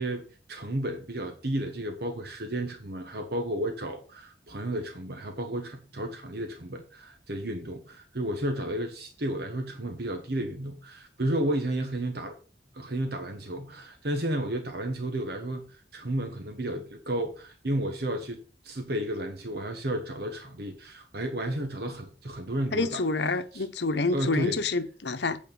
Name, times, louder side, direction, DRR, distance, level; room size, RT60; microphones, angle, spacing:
voice 1, 0.0-12.4 12.7-18.4 18.6-23.0 23.5-23.6 24.1-24.6, right 1 dB, 60° right, 1.2 m, -32 dB
voice 2, 22.7-25.4, left 3 dB, 75° left, 0.9 m, -28 dB
8.5 x 4.4 x 6.9 m
head